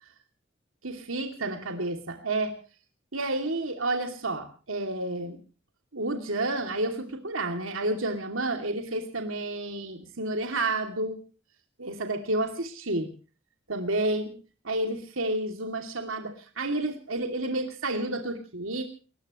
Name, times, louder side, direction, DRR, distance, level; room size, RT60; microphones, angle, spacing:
voice 1, 0.8-2.6 3.1-5.4 5.9-11.2 11.8-13.1 13.7-14.4 14.6-18.8, right 2 dB, 90° right, 4 dB, 2.8 m, -30 dB
29.5 x 15.5 x 3.1 m, 0.37 s
head